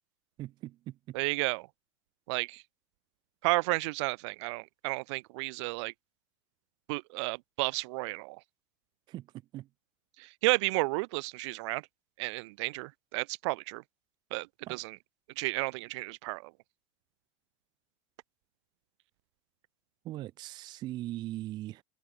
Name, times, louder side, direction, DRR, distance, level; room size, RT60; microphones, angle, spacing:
voice 1, 0.4-1.2 9.1-9.3 9.5-9.7 14.7-14.8 20.0-21.8, right 15 dB, 25° right, 0.4 m, -40 dB
voice 2, 1.1-1.7 2.3-2.6 3.4-5.9 6.9-8.4 10.2-11.8 12.2-13.8 14.3-15.0 15.4-16.5, right 25 dB, 60° right, 0.7 m, -32 dB
supercardioid pair, 160°, 17 cm